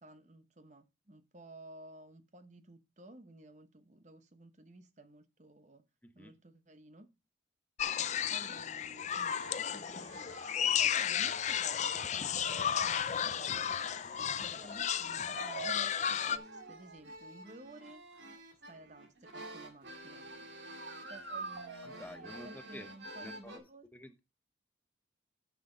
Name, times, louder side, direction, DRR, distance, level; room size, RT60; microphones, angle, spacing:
voice 1, 0.0-5.8 6.1-7.1 8.3-18.0 18.7-20.3 21.1-23.9, right 1 dB, 40° right, 1.0 m, -54 dB
sound 1, 7.8-16.4, left 8 dB, 35° left, 0.4 m, -33 dB
sound 2, 9.3-23.6, right 3 dB, 70° right, 2.2 m, -48 dB
voice 2, 21.8-23.6 23.9-24.2, left 1 dB, 10° left, 0.9 m, -50 dB
9.5 x 5.9 x 5.0 m
head